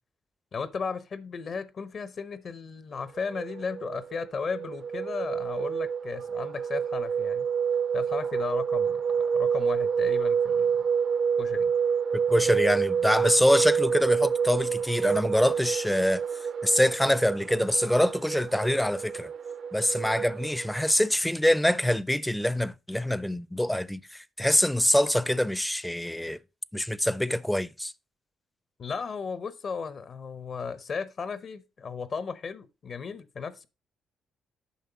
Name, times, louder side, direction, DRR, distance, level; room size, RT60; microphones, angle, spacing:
voice 1, 0.5-7.5 7.9-10.9 11.4-11.7 28.8-33.7, left 5 dB, 50° left, 0.8 m, -35 dB
sound 1, 3.2-20.9, right 6 dB, 55° right, 0.5 m, -28 dB
voice 2, 12.1-16.2 16.6-19.3 19.7-26.4 26.7-27.9, left 1 dB, 5° left, 0.4 m, -25 dB
9.3 x 5.6 x 3.9 m
cardioid pair, 90°, 0 cm